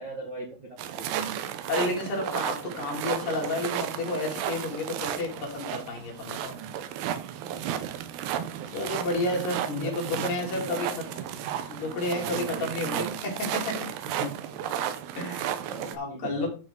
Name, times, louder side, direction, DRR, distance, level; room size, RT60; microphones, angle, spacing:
voice 1, 0.0-1.5 6.5-6.8 7.4-7.9 9.0-10.8 11.1-13.2 14.0-14.8 15.7-16.5, right 2 dB, 40° right, -2 dB, 1.8 m, -40 dB
sound 1, 0.8-16.0, right 10 dB, 80° right, 3.0 m, -33 dB
voice 2, 1.7-6.6 8.7-10.9 11.7-13.8 15.2-15.6 15.9-16.5, left 2 dB, 75° left, -1 dB, 5.4 m, -31 dB
13.0 x 5.4 x 3.9 m, 0.35 s
omnidirectional pair, 4.7 m